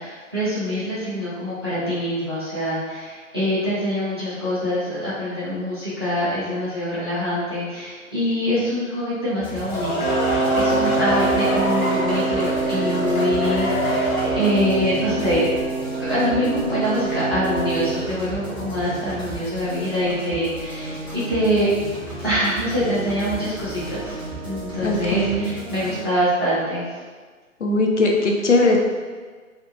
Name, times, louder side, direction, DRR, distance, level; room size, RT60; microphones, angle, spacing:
voice 1, 0.0-15.5 16.0-21.7 22.2-24.2 24.4-27.0, equal, 20° right, -11 dB, 0.5 m, -24 dB
sound 1, 9.4-14.7, left 1 dB, 90° left, 1.1 m, -26 dB
sound 2, 9.4-26.0, right 1 dB, 10° left, 0.9 m, -34 dB
Wind instrument woodwind instrument, 10.0-18.1, right 4 dB, 75° right, 0.6 m, -25 dB
voice 2, 24.8-25.5 27.6-28.8, left 2 dB, 60° left, 0 dB, 0.5 m, -19 dB
2.7 x 2.4 x 3.4 m, 1.5 s
figure-of-eight pair, 135°, 42 cm